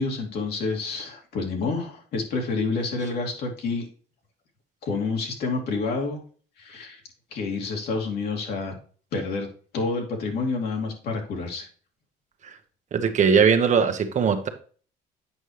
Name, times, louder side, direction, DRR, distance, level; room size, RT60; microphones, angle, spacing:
voice 1, 0.0-3.9 4.8-6.2 6.6-7.0 7.3-8.7 9.1-9.5 9.7-11.6, left 3 dB, 70° left, 1 dB, 2.6 m, -28 dB
voice 2, 12.9-14.5, right 6 dB, 45° right, 7 dB, 1.1 m, -20 dB
8.3 x 5.4 x 3.2 m, 0.41 s
cardioid pair, 110°, 17 cm